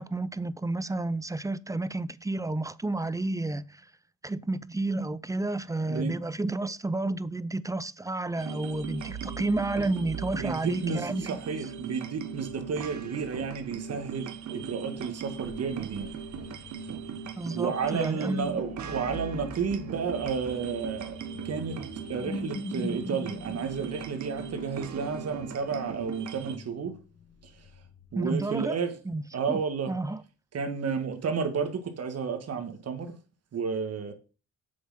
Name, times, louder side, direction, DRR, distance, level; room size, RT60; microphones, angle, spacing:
voice 1, 0.0-3.9 4.2-11.4 17.4-18.6 28.1-28.8 29.1-29.2 29.5-30.2, right 2 dB, 10° right, 0.5 m, -31 dB
sound 1, 8.4-26.6, right 6 dB, 70° right, 1.3 m, -39 dB
voice 2, 10.4-16.1 17.5-21.2 21.4-21.8 22.1-27.0 27.4-27.5 28.1-28.9 29.3-29.9 30.5-33.2 33.5-34.1, right 5 dB, 55° right, 1.9 m, -32 dB
sound 2, 15.4-28.7, left 3 dB, 30° left, 2.1 m, -44 dB
7.8 x 7.1 x 5.8 m
cardioid pair, 90°, 30 cm